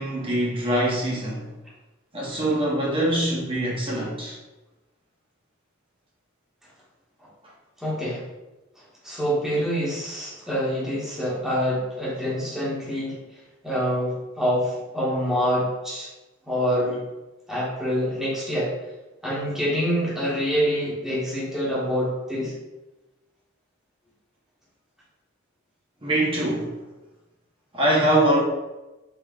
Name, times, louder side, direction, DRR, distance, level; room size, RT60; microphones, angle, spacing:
voice 1, 0.0-1.5 2.1-4.4 26.0-26.8 27.7-28.4, right 1 dB, 25° right, -4 dB, 0.8 m, -23 dB
voice 2, 7.8-8.2 9.0-13.2 13.6-16.1 16.5-17.0 17.5-18.7 19.2-22.5, equal, ahead, -8 dB, 1.0 m, -26 dB
3.5 x 3.0 x 2.3 m, 1.0 s
head